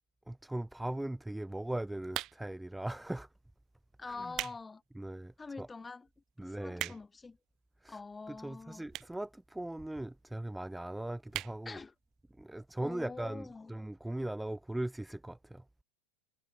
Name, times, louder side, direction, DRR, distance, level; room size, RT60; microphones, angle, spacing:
voice 1, 0.3-3.3 4.2-4.3 5.0-5.7 6.4-6.9 7.8-8.0 8.3-11.8 12.4-15.6, right 1 dB, 5° right, 1.2 m, -39 dB
sound 1, 2.1-2.6 3.4-3.6 4.1-4.6 5.0-5.1 5.8-5.9 6.1-6.2 6.4-7.2 8.0-8.1 8.9-9.2 9.5-9.6 9.8-9.9 10.1-10.2 10.6-10.8 11.3-11.6 12.0-12.1 12.2-12.3, right 15 dB, 35° right, 0.6 m, -39 dB
voice 2, 4.0-4.8 5.4-6.1 6.4-7.4 7.9-8.8 11.6-11.9 12.8-13.7, left 4 dB, 10° left, 5.0 m, -45 dB
figure-of-eight pair, 90°, 0 cm